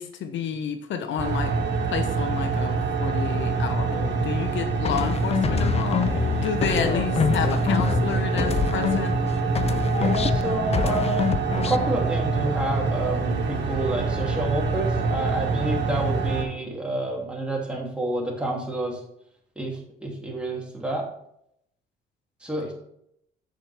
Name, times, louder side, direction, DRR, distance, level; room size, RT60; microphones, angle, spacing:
voice 1, 0.0-1.5 1.9-9.2, left 7 dB, 70° left, 8 dB, 0.9 m, -30 dB
sound 1, 1.2-16.4, right 4 dB, 65° right, 1.5 m, -26 dB
sound 2, 4.8-9.3 9.5-11.9, left 7 dB, 30° left, 0.4 m, -26 dB
voice 2, 10.0-19.0 19.6-21.1 22.4-22.7, right 1 dB, 5° right, -2 dB, 2.6 m, -29 dB
7.4 x 7.2 x 3.4 m, 0.74 s
cardioid pair, 90°, 20 cm